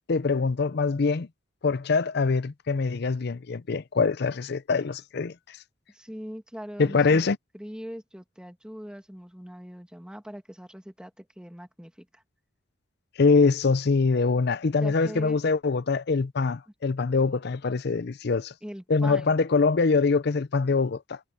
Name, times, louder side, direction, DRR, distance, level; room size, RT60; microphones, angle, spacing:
voice 1, 0.1-1.3 1.6-5.6 6.8-7.4 13.2-18.5 18.9-21.2, left 4 dB, 55° left, 0.6 m, -24 dB
voice 2, 5.9-7.3 7.5-12.2 14.8-15.4 18.6-19.3, equal, 5° right, 2.3 m, -41 dB
head